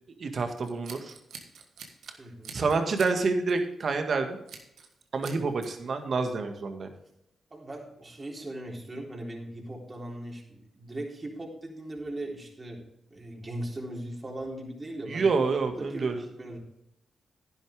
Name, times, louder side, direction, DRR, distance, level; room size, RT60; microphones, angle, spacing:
voice 1, 0.2-1.1 2.5-4.4 5.1-6.9 15.1-16.2, right 4 dB, 60° right, 6 dB, 1.8 m, -28 dB
Scissors, 0.6-2.1 2.4-3.2 3.5-3.7 4.5-4.9 5.2-5.7, right 6 dB, 75° right, 1.6 m, -46 dB
voice 2, 2.2-2.6 7.5-15.3 15.8-16.6, right 1 dB, 35° right, -1 dB, 3.5 m, -39 dB
11.5 x 10.5 x 3.5 m, 0.78 s
supercardioid pair, 45°, 0 cm